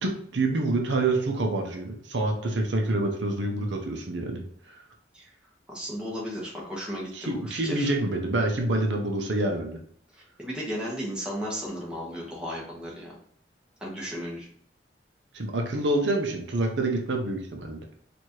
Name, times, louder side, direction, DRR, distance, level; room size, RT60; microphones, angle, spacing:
voice 1, 0.0-4.8 7.1-9.8 15.3-17.8, right 2 dB, 70° right, 2 dB, 0.7 m, -27 dB
voice 2, 5.7-7.9 10.4-13.2 13.8-14.5, equal, 5° right, -5 dB, 1.1 m, -34 dB
4.5 x 2.6 x 3.0 m, 0.62 s
head